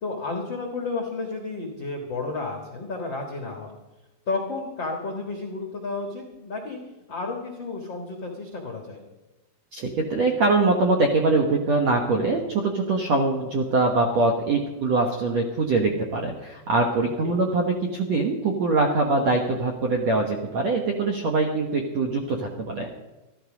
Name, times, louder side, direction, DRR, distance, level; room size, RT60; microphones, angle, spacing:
voice 1, 0.0-3.8 4.3-6.8 7.1-9.0 17.2-17.4, left 3 dB, 70° left, 2 dB, 1.1 m, -32 dB
voice 2, 9.7-22.9, right 3 dB, 70° right, 2 dB, 1.6 m, -23 dB
14.0 x 13.0 x 5.1 m, 1.1 s
omnidirectional pair, 5.0 m